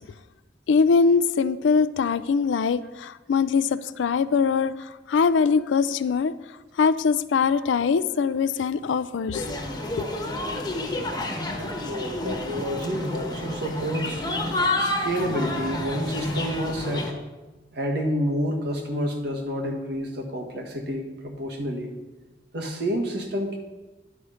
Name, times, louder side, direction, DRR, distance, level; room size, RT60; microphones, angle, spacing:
voice 1, 0.7-6.3 6.8-9.6 9.8-10.1, left 5 dB, 85° left, 16 dB, 0.4 m, -22 dB
sound 1, 9.3-17.1, left 1 dB, 25° left, 1.1 m, -29 dB
voice 2, 11.9-14.5 14.8-17.1 17.7-21.9 22.5-23.6, equal, 65° right, 2 dB, 1.4 m, -29 dB
10.0 x 5.6 x 5.0 m, 1.2 s
head